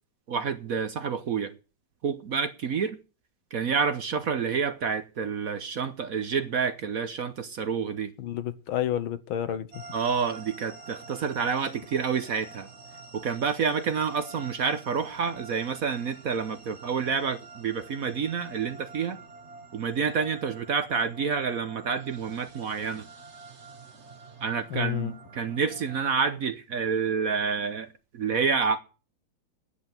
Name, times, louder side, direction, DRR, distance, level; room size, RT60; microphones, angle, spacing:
voice 1, 0.3-1.5 2.0-3.0 3.5-8.1 9.9-12.7 13.1-19.2 19.7-23.1 24.4-27.9 28.1-28.8, right 6 dB, 55° right, 1.1 m, -28 dB
voice 2, 8.2-9.8 24.7-25.2, left 11 dB, 80° left, 1.7 m, -30 dB
sound 1, 9.7-26.0, right 4 dB, 40° right, 1.5 m, -47 dB
10.0 x 8.0 x 9.0 m
omnidirectional pair, 2.2 m